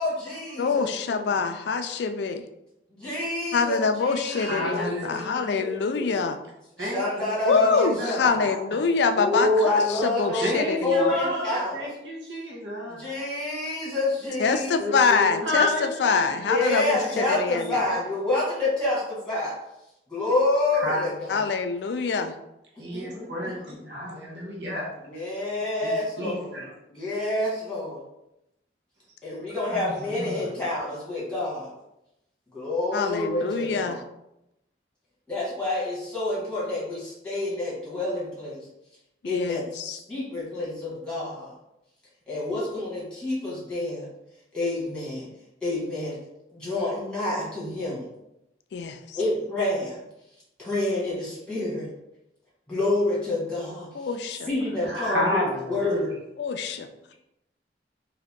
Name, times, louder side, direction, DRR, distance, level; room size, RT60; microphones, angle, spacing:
voice 1, 0.0-1.2 2.9-6.1 6.8-8.6 9.1-10.5 10.8-11.9 12.9-15.5 16.4-19.6 20.1-21.4 22.9-23.5 25.0-26.6 26.9-28.0 29.2-31.7 32.5-34.0 35.3-38.6 39.2-41.5 42.3-44.1 44.5-45.3 45.6-46.2 46.5-48.1 49.1-50.0 50.6-51.9 52.7-53.9 54.5-56.2, left 2 dB, 5° left, -7 dB, 1.5 m, -28 dB
voice 2, 0.6-2.5 3.5-6.4 7.5-11.2 14.4-17.8 21.3-22.4 32.9-34.0 39.2-40.0 48.7-49.2 53.9-54.5 56.4-57.1, left 5 dB, 70° left, 9 dB, 0.3 m, -25 dB
voice 3, 4.3-5.2 6.8-8.1 10.4-13.1 15.4-16.6 17.0-17.7 20.7-21.2 22.8-24.9 25.8-25.9 26.2-26.6 29.8-30.5 54.8-56.0, left 1 dB, 75° right, -3 dB, 1.0 m, -31 dB
3.7 x 2.7 x 3.5 m, 0.88 s
head